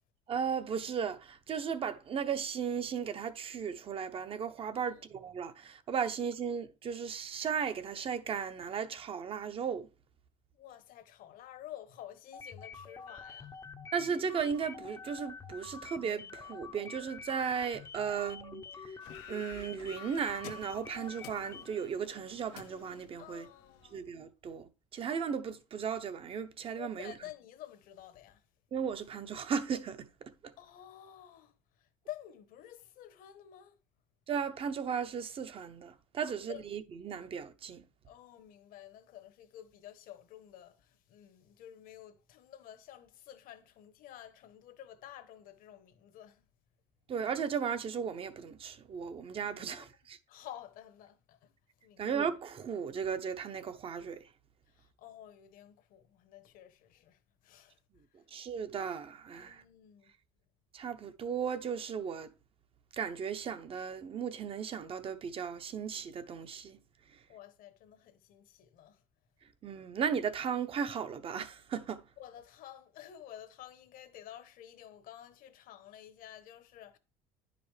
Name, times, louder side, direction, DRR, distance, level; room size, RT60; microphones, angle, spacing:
voice 1, 0.3-9.9 13.9-18.9 19.3-23.5 23.9-27.1 28.7-30.1 34.3-37.8 47.1-50.2 52.0-54.2 58.3-59.6 60.7-62.3 62.9-66.8 69.6-72.0, right 7 dB, 35° right, 0.8 m, -36 dB
voice 2, 4.7-5.1 10.5-13.6 18.0-18.3 23.2-24.1 26.8-28.4 30.6-33.8 36.2-36.6 38.0-46.5 49.6-49.9 50.3-51.5 51.8-52.1 54.7-57.8 59.3-60.1 67.3-69.0 72.2-77.0, left 12 dB, 60° left, 1.0 m, -51 dB
sound 1, 12.3-21.9, left 5 dB, 20° left, 0.6 m, -47 dB
sound 2, 19.0-23.9, left 9 dB, 85° left, 0.8 m, -52 dB
10.0 x 5.1 x 3.3 m
cardioid pair, 125°, 16 cm